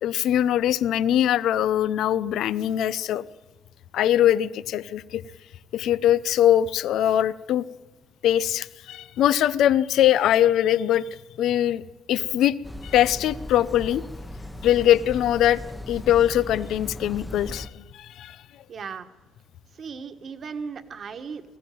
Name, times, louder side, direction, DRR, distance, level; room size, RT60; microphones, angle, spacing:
voice 1, 0.0-3.2 3.9-5.2 5.7-7.6 8.2-11.0 11.4-11.8 12.1-12.5 12.8-14.0 14.6-15.6 15.9-18.4, left 11 dB, 70° left, 17 dB, 0.7 m, -22 dB
sound 1, 12.6-17.7, left 1 dB, 5° left, 1.0 m, -38 dB
voice 2, 18.7-19.1 19.7-21.4, right 5 dB, 45° right, 8 dB, 1.5 m, -36 dB
20.0 x 15.5 x 9.3 m, 1.2 s
cardioid pair, 130°, 0 cm